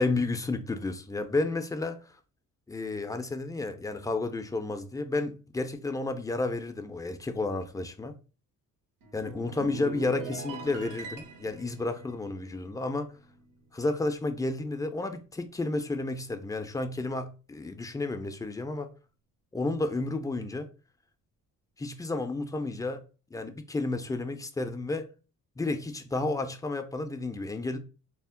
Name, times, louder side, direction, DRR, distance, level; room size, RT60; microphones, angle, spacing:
voice 1, 0.0-2.0 2.7-8.1 9.1-13.1 13.7-18.9 19.5-20.7 21.8-23.0 23.3-25.1 25.6-27.8, left 2 dB, 10° left, 0.4 m, -31 dB
sound 1, 9.0-13.6 13.9-14.2, right 4 dB, 90° right, 0.7 m, -42 dB
2.2 x 2.0 x 3.6 m
supercardioid pair, 60°, 38 cm